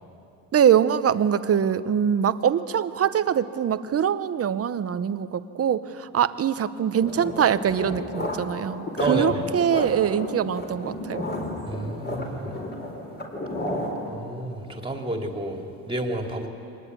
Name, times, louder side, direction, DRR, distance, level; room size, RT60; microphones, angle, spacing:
voice 1, 0.5-11.2, right 8 dB, 35° right, 13 dB, 0.9 m, -23 dB
sound 1, 7.0-14.1, left 1 dB, 25° left, 4.7 m, -32 dB
voice 2, 9.0-9.4 11.7-12.5 14.1-16.5, right 1 dB, 10° right, 2 dB, 3.1 m, -30 dB
25.0 x 19.5 x 9.7 m, 2.7 s
cardioid pair, 115°, 42 cm